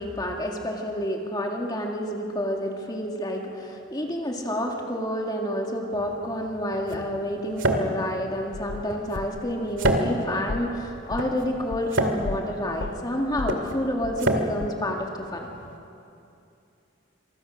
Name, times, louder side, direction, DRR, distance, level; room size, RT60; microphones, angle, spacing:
voice 1, 0.0-15.5, equal, 20° left, 0 dB, 2.2 m, -29 dB
sound 1, 5.9-15.8, right 1 dB, 75° right, 2.1 m, -29 dB
sound 2, 8.5-10.1 10.5-12.5 12.8-14.3 14.6-14.7, left 3 dB, 60° left, 0.5 m, -35 dB
26.0 x 24.5 x 6.5 m, 2.6 s
head